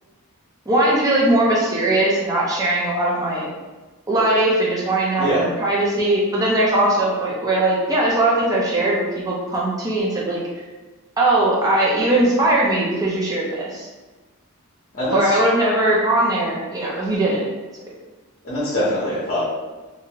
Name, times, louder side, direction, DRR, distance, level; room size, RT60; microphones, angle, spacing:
voice 1, 0.7-3.5 4.1-10.4 11.2-13.9 15.1-17.4, right 1 dB, 15° right, -5 dB, 0.4 m, -20 dB
voice 2, 14.9-15.4 18.4-19.4, left 1 dB, 40° left, -8 dB, 0.7 m, -22 dB
2.6 x 2.5 x 2.8 m, 1.2 s
head